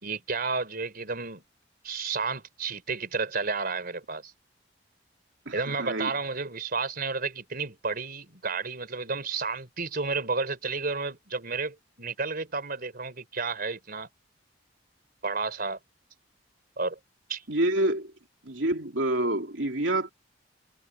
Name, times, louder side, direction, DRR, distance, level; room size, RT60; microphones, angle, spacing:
voice 1, 0.0-1.4 1.8-4.3 5.5-14.1 15.2-15.8 16.8-17.0 17.3-17.5, right 4 dB, 50° right, 4.0 m, -31 dB
voice 2, 5.5-6.1 17.5-18.1 18.4-20.1, right 1 dB, 70° right, 3.7 m, -27 dB
head